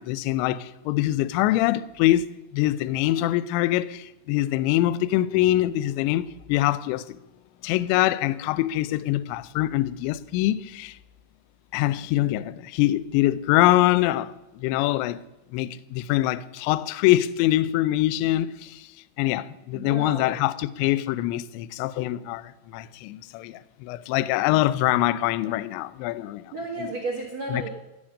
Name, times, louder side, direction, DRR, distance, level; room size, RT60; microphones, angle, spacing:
voice 1, 0.0-7.2 7.6-11.0 11.7-15.2 15.5-18.9 19.2-26.5 26.8-26.9 27.5-27.7, left 15 dB, 85° left, 2.6 m, -24 dB
voice 2, 19.7-20.4 26.5-27.7, right 3 dB, 65° right, 1.7 m, -32 dB
16.0 x 8.7 x 6.4 m
omnidirectional pair, 5.7 m